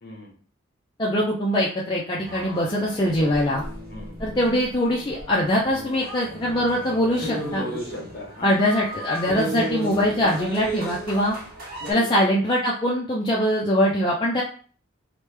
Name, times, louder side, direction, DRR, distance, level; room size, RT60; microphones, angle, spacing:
voice 1, 0.0-0.3 3.0-3.3 3.9-4.2 7.4-8.7 11.9-12.2, left 1 dB, 50° left, 0 dB, 0.9 m, -36 dB
voice 2, 1.0-3.6 4.2-7.6 8.4-11.3 11.9-14.4, equal, 20° left, -5 dB, 0.4 m, -22 dB
sound 1, 2.2-11.9, right 1 dB, 45° right, 0.9 m, -35 dB
3.0 x 2.1 x 3.2 m, 0.42 s
head